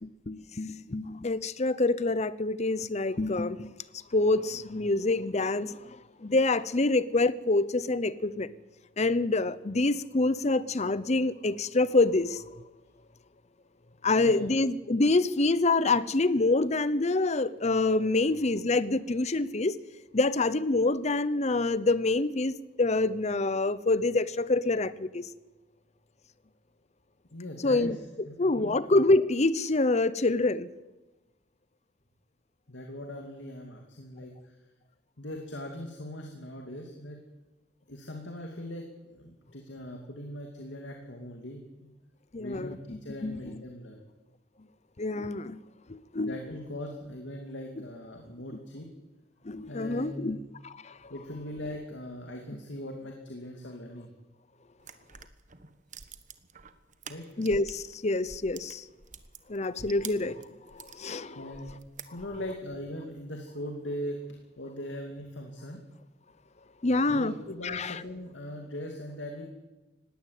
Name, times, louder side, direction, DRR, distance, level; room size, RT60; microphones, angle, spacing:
voice 1, 0.0-3.7 4.1-6.0 6.2-8.5 9.0-12.4 14.0-19.8 20.1-25.3 27.6-28.0 28.4-30.7 42.3-42.8 43.2-43.6 45.0-45.6 45.9-46.3 49.4-50.4 50.6-50.9 57.4-58.8 59.5-60.4 60.7-61.4 66.8-67.3 67.6-68.0, left 2 dB, 35° left, 0.8 m, -26 dB
voice 2, 14.1-14.5 27.3-27.9 28.2-28.8 32.7-34.5 35.2-37.2 37.9-41.9 42.4-44.0 46.2-48.9 49.7-50.4 51.1-54.1 57.1-57.3 61.3-61.7 62.1-64.2 64.6-65.8 67.1-69.5, left 1 dB, 75° left, 2.6 m, -40 dB
sound 1, 54.8-57.9 58.2-61.0 61.5-62.6, right 6 dB, 40° right, 1.4 m, -47 dB
20.0 x 17.0 x 8.3 m
head